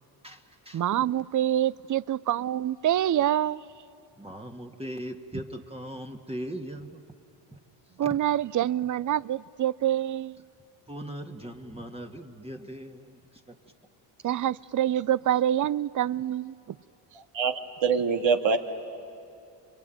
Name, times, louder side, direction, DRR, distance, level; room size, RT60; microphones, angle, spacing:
voice 1, 0.7-3.7 8.0-10.4 14.2-16.8, right 11 dB, 40° right, 0.5 m, -26 dB
voice 2, 4.2-7.0 10.9-13.0, equal, 10° right, 1.8 m, -39 dB
voice 3, 17.3-18.6, right 5 dB, 60° right, 2.0 m, -24 dB
28.0 x 22.5 x 9.1 m
supercardioid pair, 60°, 50 cm